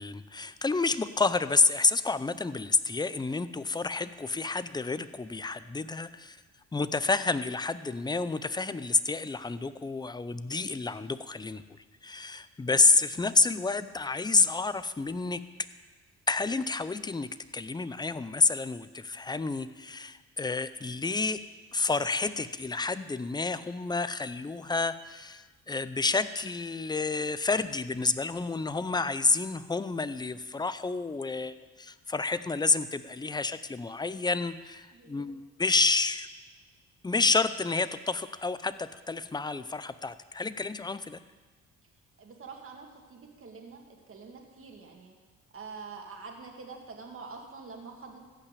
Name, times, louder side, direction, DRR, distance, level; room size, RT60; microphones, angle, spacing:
voice 1, 0.0-6.4 6.7-11.6 12.0-15.4 16.3-21.4 21.7-36.3 37.0-41.2, left 3 dB, 15° left, 14 dB, 0.5 m, -29 dB
voice 2, 34.9-35.3 42.2-45.1 45.5-48.2, right 4 dB, 45° right, 2 dB, 2.3 m, -46 dB
14.5 x 5.8 x 8.4 m, 1.3 s
cardioid pair, 90°, 30 cm